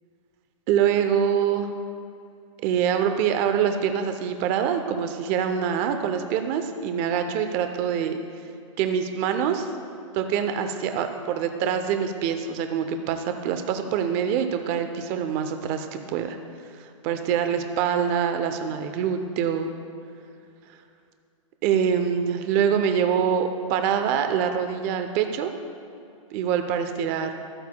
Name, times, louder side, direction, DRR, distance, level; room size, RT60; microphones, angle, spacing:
voice 1, 0.7-1.7 2.6-8.2 8.8-9.7 10.1-16.4 17.0-19.7 21.6-25.5 26.3-27.3, right 8 dB, 30° right, 7 dB, 0.6 m, -25 dB
13.0 x 13.0 x 2.2 m, 2.5 s
hypercardioid pair, 160°, 17 cm